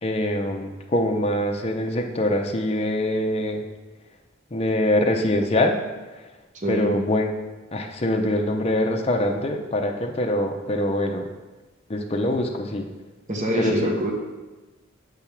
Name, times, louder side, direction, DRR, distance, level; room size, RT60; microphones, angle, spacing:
voice 1, 0.0-3.6 4.5-5.8 6.7-7.3 7.7-11.3 11.9-12.9 13.6-13.9, left 1 dB, 30° left, 3 dB, 0.6 m, -24 dB
voice 2, 6.5-6.9 12.3-12.4 13.3-14.1, right 1 dB, 40° right, 0 dB, 1.1 m, -25 dB
6.9 x 3.5 x 5.8 m, 1.2 s
head